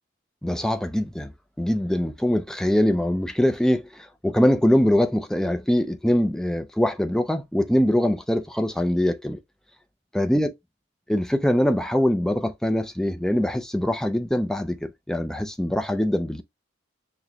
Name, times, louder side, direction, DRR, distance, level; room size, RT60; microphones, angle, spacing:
voice 1, 0.4-1.3 1.6-9.4 10.1-10.5 11.1-16.4, left 1 dB, 5° left, 0.3 m, -23 dB
6.0 x 2.1 x 2.7 m
head